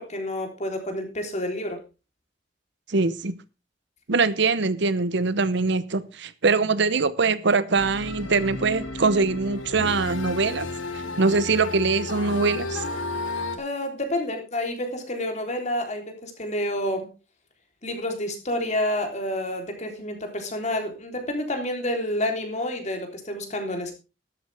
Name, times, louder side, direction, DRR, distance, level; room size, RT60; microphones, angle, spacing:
voice 1, 0.0-1.8 13.6-17.1 17.8-23.9, left 1 dB, 35° left, 3.6 m, -29 dB
voice 2, 2.9-3.3 4.1-10.7 10.9-12.8, right 4 dB, 60° right, 0.8 m, -23 dB
sound 1, 7.8-13.6, left 2 dB, 85° left, 2.3 m, -32 dB
13.0 x 12.5 x 3.5 m
head